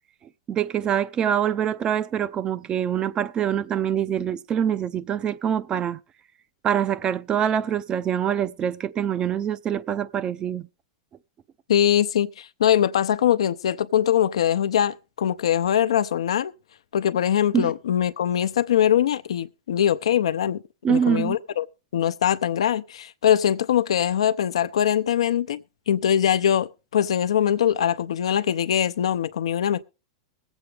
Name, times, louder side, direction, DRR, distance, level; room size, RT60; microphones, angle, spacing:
voice 1, 0.5-6.0 6.6-10.7 17.5-17.7 20.8-21.4, right 9 dB, 30° right, 0.6 m, -25 dB
voice 2, 11.7-16.5 16.9-20.6 20.9-21.6 21.9-29.8, left 10 dB, 80° left, 0.7 m, -22 dB
21.0 x 8.1 x 3.4 m
hypercardioid pair, 115°, 3 cm